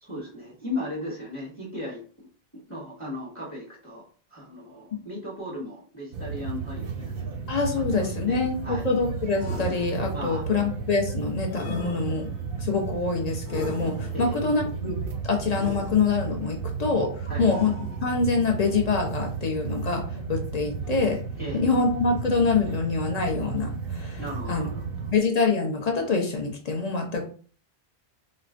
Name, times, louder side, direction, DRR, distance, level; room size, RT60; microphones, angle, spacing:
voice 1, 0.0-2.3 2.7-4.0 4.3-7.3 7.8-8.8 10.1-10.4 14.1-14.4 17.3-17.5 21.4-21.6 24.2-25.1, left 1 dB, 15° left, -4 dB, 0.8 m, -36 dB
sound 1, 6.1-25.1, right 5 dB, 65° right, 0.7 m, -33 dB
voice 2, 7.5-12.3 12.6-15.0 15.2-20.0 20.3-21.2 21.5-24.2 24.5-24.7 25.1-27.3, left 4 dB, 45° left, 2 dB, 0.6 m, -25 dB
sound 2, 9.4-10.4 11.5-12.5 13.4-14.4 15.5-16.4 17.4-18.3, left 2 dB, 75° left, 1.0 m, -39 dB
4.1 x 2.1 x 2.5 m, 0.43 s
omnidirectional pair, 1.1 m